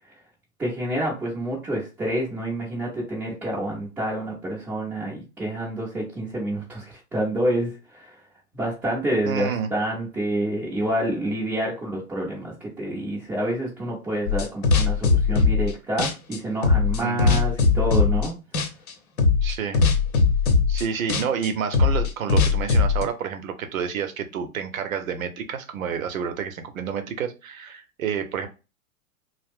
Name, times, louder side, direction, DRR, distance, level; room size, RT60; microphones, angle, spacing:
voice 1, 0.6-8.1 8.5-18.4, right 1 dB, 5° right, -8 dB, 0.4 m, -28 dB
voice 2, 9.2-9.7 17.0-17.4 19.4-19.8 20.7-28.5, right 7 dB, 70° right, 8 dB, 0.7 m, -29 dB
sound 1, 14.3-15.7 16.0-18.3 18.5-18.9 19.2-23.0, left 4 dB, 75° left, 0.8 m, -20 dB
2.4 x 2.1 x 3.4 m, 0.29 s
figure-of-eight pair, 105°, 43 cm